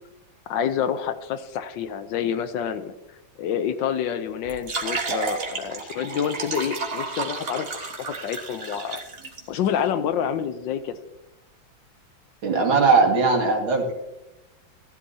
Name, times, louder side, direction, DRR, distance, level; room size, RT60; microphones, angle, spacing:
voice 1, 0.5-2.9 3.4-9.0 9.5-11.0, left 8 dB, 75° left, 11 dB, 1.3 m, -28 dB
sound 1, 4.4-9.4, right 4 dB, 35° right, 1.4 m, -31 dB
voice 2, 12.4-13.9, right 4 dB, 80° right, 0 dB, 2.9 m, -19 dB
15.5 x 11.5 x 2.8 m, 0.95 s
omnidirectional pair, 2.2 m